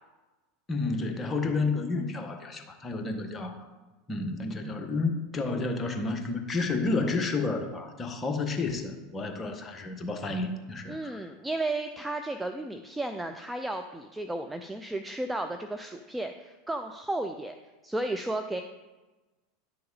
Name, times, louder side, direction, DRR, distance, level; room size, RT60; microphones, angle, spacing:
voice 1, 0.7-3.7 4.1-11.2, left 3 dB, 25° left, 5 dB, 1.3 m, -31 dB
voice 2, 10.9-17.6 17.8-18.6, right 2 dB, 10° right, 6 dB, 0.5 m, -33 dB
10.5 x 6.6 x 4.1 m, 1.2 s
figure-of-eight pair, 80°, 0 cm